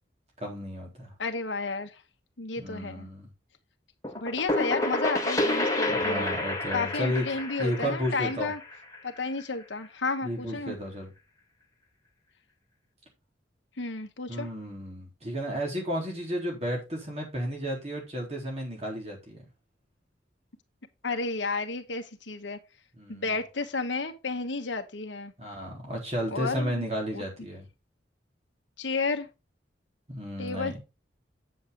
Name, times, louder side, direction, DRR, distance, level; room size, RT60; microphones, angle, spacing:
voice 1, 0.4-1.1 2.6-3.3 5.9-7.3 7.6-8.5 10.2-11.1 14.3-19.4 22.9-23.3 25.4-27.7 30.1-30.8, equal, 35° right, 3.8 m, -33 dB
voice 2, 1.2-2.0 2.4-3.1 4.1-6.2 6.7-8.6 9.0-10.8 13.8-14.5 21.0-22.6 23.1-25.3 26.3-26.8 27.1-27.2 28.8-29.3 30.4-30.8, left 3 dB, 80° left, 1.2 m, -32 dB
sound 1, 4.0-9.6, left 1 dB, 15° left, 1.6 m, -29 dB
8.4 x 7.6 x 3.9 m
head